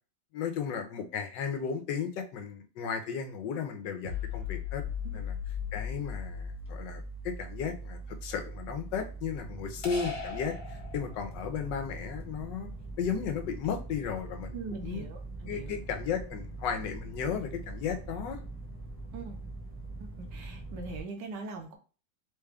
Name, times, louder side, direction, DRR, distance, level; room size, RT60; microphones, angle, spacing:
voice 1, 0.3-4.8 5.1-5.3 5.7-12.7 13.0-14.5 14.8-15.0 15.4-18.4, left 7 dB, 90° left, 6 dB, 1.3 m, -35 dB
sound 1, 4.0-7.5, left 13 dB, 55° right, 1.2 m, -37 dB
sound 2, 4.8-21.0, right 3 dB, 10° right, 0.7 m, -42 dB
sound 3, 9.8-11.5, left 3 dB, 60° left, 1.5 m, -40 dB
voice 2, 14.5-15.7 19.1-19.4 20.0-21.8, right 4 dB, 75° right, 4 dB, 1.4 m, -42 dB
3.9 x 2.3 x 3.4 m, 0.37 s
omnidirectional pair, 1.9 m